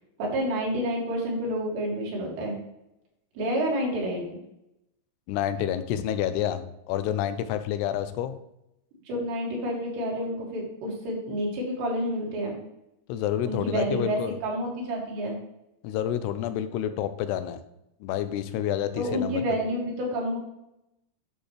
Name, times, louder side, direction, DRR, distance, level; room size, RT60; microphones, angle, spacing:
voice 1, 0.2-2.6 3.4-4.4 9.1-12.5 13.5-15.4 19.0-20.4, equal, 90° right, -2 dB, 4.5 m, -29 dB
voice 2, 5.3-8.4 13.1-14.3 15.8-17.6 18.0-19.4, left 10 dB, 80° left, 11 dB, 2.7 m, -29 dB
11.0 x 6.4 x 3.2 m, 0.86 s
omnidirectional pair, 4.8 m